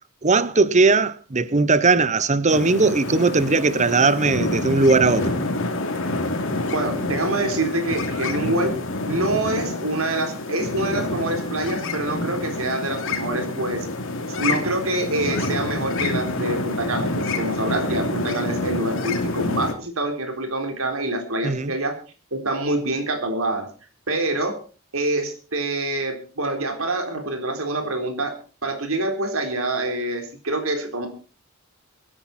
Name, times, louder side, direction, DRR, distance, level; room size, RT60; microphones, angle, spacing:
voice 1, 0.2-5.4 18.4-18.5 21.4-21.7, right 3 dB, 35° right, 0.9 m, -19 dB
sound 1, 2.5-19.7, left 2 dB, 65° left, 2.9 m, -27 dB
voice 2, 6.7-8.8 9.1-13.9 14.4-22.0 22.3-23.7 24.1-24.6 24.9-28.4 28.6-31.1, right 2 dB, 70° right, 3.9 m, -26 dB
25.0 x 10.0 x 4.3 m
head